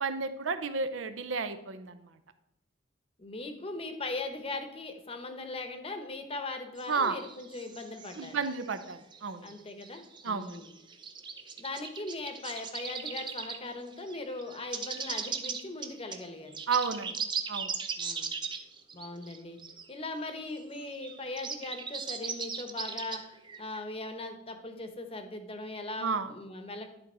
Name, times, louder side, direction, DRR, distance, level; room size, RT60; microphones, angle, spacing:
voice 1, 0.0-2.1 6.9-7.2 8.2-9.5 10.2-10.6 16.7-17.2 17.5-17.7 26.0-26.3, right 5 dB, 85° right, 10 dB, 0.6 m, -32 dB
voice 2, 3.2-8.4 9.4-10.7 11.6-16.6 18.0-18.3 18.9-19.6 19.9-23.2 23.6-26.9, left 2 dB, 30° left, 7 dB, 0.8 m, -39 dB
sound 1, 6.8-9.2 9.5-13.7 13.9-19.8 20.1-20.2 20.4-23.8, right 6 dB, 25° right, 0.5 m, -39 dB
11.0 x 4.0 x 4.2 m, 0.84 s
head